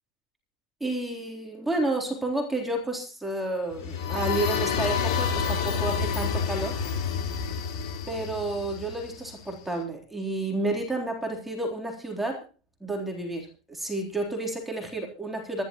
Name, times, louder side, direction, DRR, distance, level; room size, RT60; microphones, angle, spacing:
voice 1, 0.8-6.8 8.1-12.5 12.8-15.6, right 2 dB, 5° right, 1 dB, 3.7 m, -30 dB
sound 1, 3.7-9.5, left 6 dB, 70° left, 4.2 m, -29 dB
25.0 x 11.5 x 3.1 m, 0.33 s
supercardioid pair, 150°, 3 cm